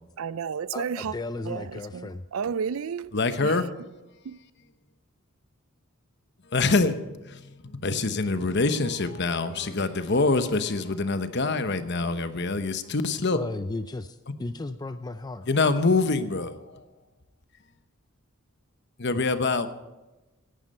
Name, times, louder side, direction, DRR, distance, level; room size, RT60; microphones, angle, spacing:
voice 1, 0.2-1.1 1.5-3.6 4.2-4.4, right 6 dB, 65° right, 0.4 m, -32 dB
voice 2, 0.7-2.2 13.3-15.5, left 2 dB, 20° left, 0.4 m, -35 dB
voice 3, 3.1-3.7 6.5-7.0 7.3-13.4 15.5-16.8 19.0-19.7, left 3 dB, 50° left, 1.0 m, -25 dB
16.5 x 12.0 x 5.5 m
head